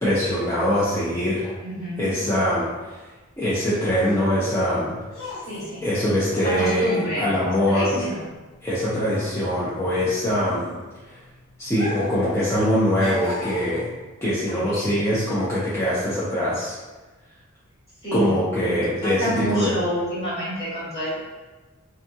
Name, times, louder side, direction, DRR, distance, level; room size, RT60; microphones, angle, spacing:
voice 1, 0.0-1.5 2.0-3.1 3.4-5.0 5.8-8.0 8.6-10.7 11.1-11.2 11.6-13.9 14.2-16.8 18.1-19.8, equal, 10° left, -10 dB, 0.4 m, -23 dB
voice 2, 1.6-2.0 5.5-5.8 6.4-7.3 7.7-8.2 14.5-15.0 18.0-18.4 18.6-18.8 19.0-21.2, equal, 30° left, -10 dB, 1.0 m, -28 dB
sound 1, 3.4-8.7 9.0-11.2 11.7-12.3 12.5-14.0 14.7-14.9, equal, 60° left, 0.9 m, -37 dB
2.7 x 2.4 x 2.6 m, 1.2 s
head